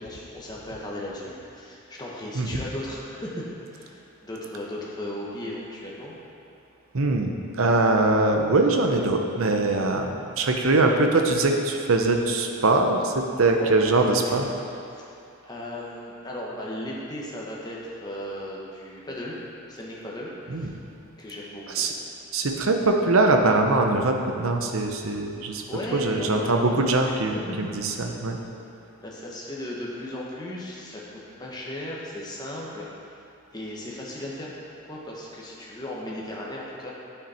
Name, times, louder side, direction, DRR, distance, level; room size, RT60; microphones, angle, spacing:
voice 1, 0.0-6.2 13.6-13.7 14.1-14.3 14.9-15.1 15.4-19.4 19.7-20.8 21.2-21.9 25.7-26.8 27.5-27.6 29.0-31.0 31.4-33.2 33.5-34.5 34.9-36.9, left 1 dB, 20° left, -4 dB, 1.2 m, -36 dB
voice 2, 6.9-14.5 20.5-20.7 21.7-21.9 22.3-25.6 25.9-28.4, right 2 dB, 70° right, 3 dB, 0.8 m, -22 dB
9.8 x 6.1 x 4.3 m, 2.6 s
head